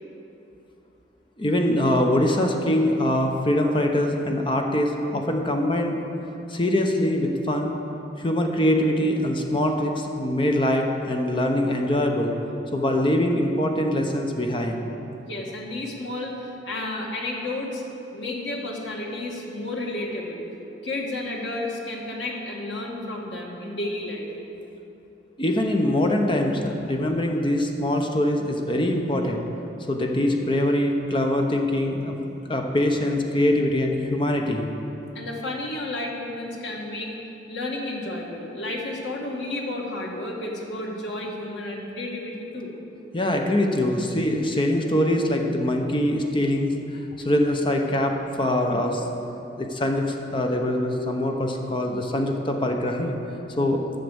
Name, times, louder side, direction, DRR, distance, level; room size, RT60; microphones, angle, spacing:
voice 1, 1.4-6.0 6.5-7.8 8.2-12.3 12.7-14.9 25.4-29.4 29.9-32.1 32.5-34.7 43.1-46.7 47.2-49.1 49.6-53.1 53.6-53.8, left 1 dB, 30° left, 2 dB, 0.9 m, -23 dB
voice 2, 15.3-17.8 18.1-20.4 20.8-24.3 35.1-37.1 37.5-42.7, left 2 dB, 90° left, -1 dB, 1.8 m, -32 dB
11.5 x 6.8 x 7.0 m, 2.9 s
head